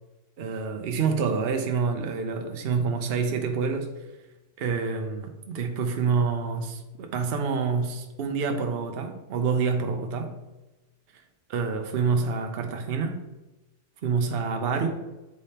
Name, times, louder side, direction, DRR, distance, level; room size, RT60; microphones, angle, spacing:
voice 1, 0.4-3.9 4.6-10.3 11.5-13.2 14.0-14.9, right 5 dB, 50° right, 0.8 m, -27 dB
8.1 x 3.4 x 4.2 m
omnidirectional pair, 1.5 m